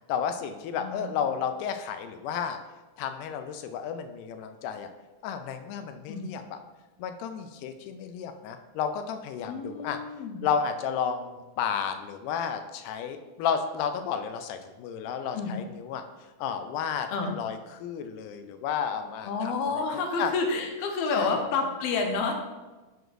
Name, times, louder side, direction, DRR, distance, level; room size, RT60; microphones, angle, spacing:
voice 1, 0.1-2.6 3.0-4.9 5.2-6.6 7.0-10.0 10.4-16.0 16.4-20.3 21.1-21.4, left 7 dB, 90° left, 8 dB, 2.1 m, -32 dB
voice 2, 0.8-1.1 6.1-6.3 9.5-10.4 15.3-15.5 17.1-17.4 19.2-22.4, left 4 dB, 70° left, 3 dB, 1.7 m, -29 dB
7.0 x 6.1 x 2.5 m, 1.2 s
omnidirectional pair, 3.6 m